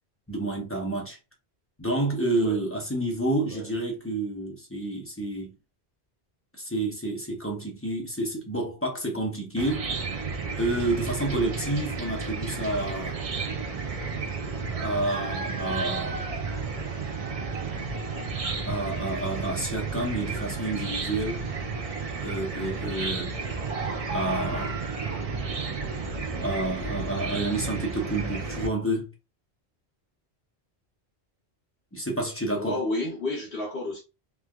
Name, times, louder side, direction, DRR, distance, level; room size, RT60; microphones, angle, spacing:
voice 1, 0.3-1.2 1.8-5.5 6.5-9.9 10.6-13.2 14.8-16.4 18.6-21.4 22.2-23.4 24.1-24.8 26.3-29.1 31.9-32.8, right 1 dB, 15° left, 0.5 m, -29 dB
Chicken rooster / Cricket, 9.6-28.7, right 4 dB, 45° right, 0.5 m, -32 dB
voice 2, 32.6-34.0, left 2 dB, 65° left, 1.0 m, -31 dB
3.2 x 2.3 x 2.2 m
omnidirectional pair, 1.1 m